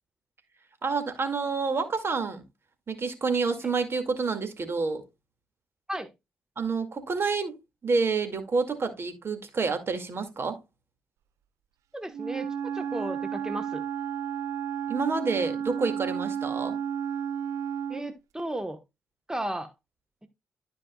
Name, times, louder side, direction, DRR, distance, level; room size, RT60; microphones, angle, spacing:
voice 1, 0.8-2.4 2.9-5.0 6.6-7.6 7.8-10.6 14.9-16.8, right 4 dB, 50° right, 2.2 m, -28 dB
voice 2, 11.9-13.8 17.9-18.8 19.3-19.7, right 1 dB, 10° right, 1.2 m, -34 dB
Wind instrument woodwind instrument, 12.1-18.1, right 8 dB, 75° right, 0.4 m, -32 dB
13.0 x 5.3 x 2.3 m
hypercardioid pair, 40°, 5 cm